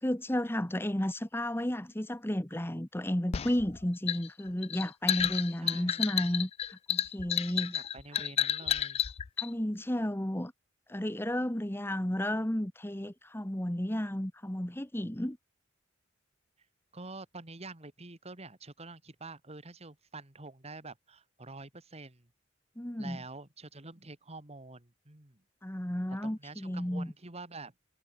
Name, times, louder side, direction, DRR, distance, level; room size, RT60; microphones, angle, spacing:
voice 1, 0.0-7.7 9.4-10.5 10.9-15.4 22.8-23.2 25.6-27.1, equal, 10° left, 1.3 m, -33 dB
sound 1, 3.3-9.5, left 9 dB, 30° left, 0.3 m, -31 dB
voice 2, 5.6-6.2 7.5-9.0 16.9-22.3 23.0-25.4 26.1-27.7, right 3 dB, 35° right, 2.2 m, -47 dB
head